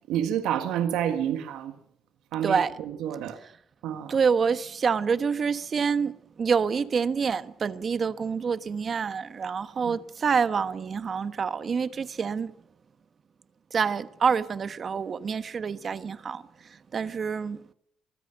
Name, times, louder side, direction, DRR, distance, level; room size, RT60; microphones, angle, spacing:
voice 1, 0.0-1.8 2.3-3.4 3.8-4.1 9.8-10.0, right 10 dB, 85° right, 1.7 m, -29 dB
voice 2, 4.1-12.5 13.7-17.7, right 6 dB, 40° right, 1.2 m, -27 dB
24.0 x 15.0 x 8.9 m
cardioid pair, 105°, 0 cm